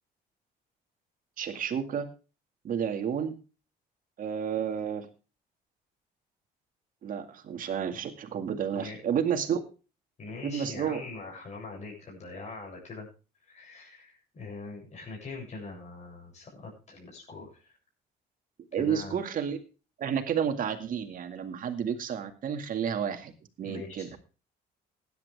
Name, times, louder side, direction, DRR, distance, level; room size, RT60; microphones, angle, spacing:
voice 1, 1.4-2.1 2.6-3.3 4.2-5.1 7.0-9.6 10.4-11.0 18.7-19.6 20.0-23.3 23.6-24.1, right 8 dB, 55° right, 7 dB, 2.2 m, -31 dB
voice 2, 8.7-9.1 10.2-13.1 13.5-17.8 18.7-19.2 23.6-24.2, left 3 dB, 40° left, -1 dB, 7.5 m, -43 dB
16.0 x 10.5 x 3.5 m, 0.34 s
cardioid pair, 110°, 17 cm